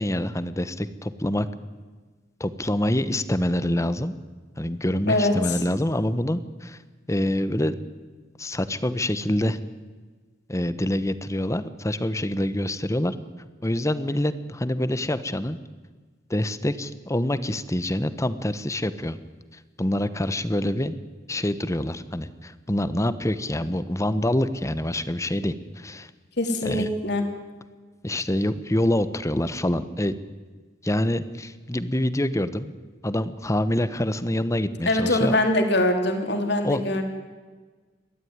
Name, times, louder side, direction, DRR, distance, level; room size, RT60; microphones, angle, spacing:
voice 1, 0.0-1.5 2.4-4.1 4.6-6.8 7.1-7.7 8.4-9.6 10.5-13.1 13.6-15.6 16.3-19.2 19.8-21.0 21.3-26.1 26.6-26.9 28.0-30.1 30.8-32.7 33.0-35.4 36.6-37.0, left 1 dB, 15° left, 13 dB, 1.0 m, -26 dB
voice 2, 26.4-27.2 34.9-37.0, left 1 dB, 60° left, 4 dB, 3.3 m, -23 dB
29.5 x 12.5 x 9.7 m, 1.4 s
head